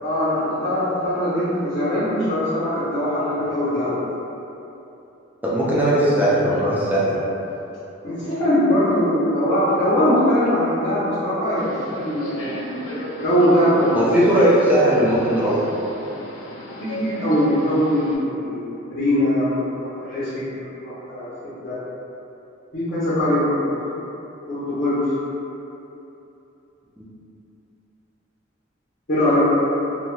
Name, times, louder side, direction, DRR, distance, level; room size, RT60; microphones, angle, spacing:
voice 1, 0.0-3.9 8.0-12.6 13.2-14.0 16.8-21.8 22.7-23.7 24.5-25.0 29.1-29.5, equal, 50° left, -13 dB, 0.7 m, -21 dB
voice 2, 5.4-7.2 13.9-15.6 27.0-27.1, right 1 dB, 10° right, -8 dB, 0.5 m, -18 dB
Subway metro underground, 11.6-18.2, equal, 85° left, 0.5 m, -34 dB
2.7 x 2.3 x 3.0 m, 2.9 s
head